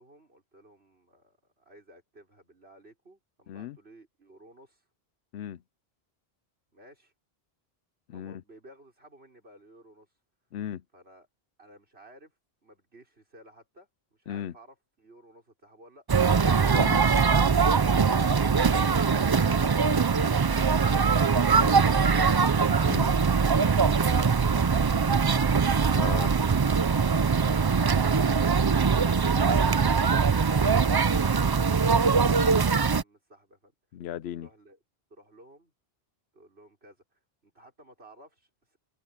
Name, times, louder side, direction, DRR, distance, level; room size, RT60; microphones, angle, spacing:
voice 1, 0.0-4.8 6.7-7.1 8.1-10.1 10.9-11.3 11.6-12.3 12.6-16.1 31.1-33.7 34.4-34.8 35.1-35.7 36.3-38.8, right 1 dB, 80° right, 6.1 m, -54 dB
voice 2, 3.5-3.8 5.3-5.6 8.1-8.4 10.5-10.8 14.3-14.5 16.6-17.0 21.5-21.7 22.9-23.1 25.9-26.3 33.9-34.5, left 10 dB, 80° left, 0.9 m, -36 dB
sound 1, 16.1-33.0, right 5 dB, 35° right, 0.3 m, -22 dB
omnidirectional pair, 1.1 m